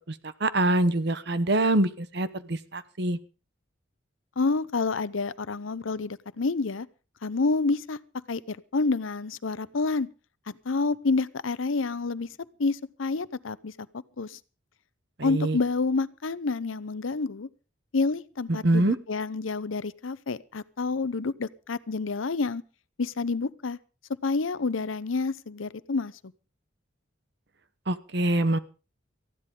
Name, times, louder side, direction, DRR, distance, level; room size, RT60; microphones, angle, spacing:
voice 1, 0.1-3.2 15.2-15.6 18.5-19.0 27.9-28.6, right 1 dB, 55° right, 13 dB, 1.0 m, -25 dB
voice 2, 4.4-6.9 7.2-8.0 8.3-10.1 10.5-12.3 12.6-13.7 14.2-14.4 15.2-17.5 17.9-22.6 23.0-23.8 24.2-26.1, left 3 dB, 85° left, 17 dB, 0.7 m, -28 dB
19.0 x 15.0 x 3.8 m, 0.34 s
head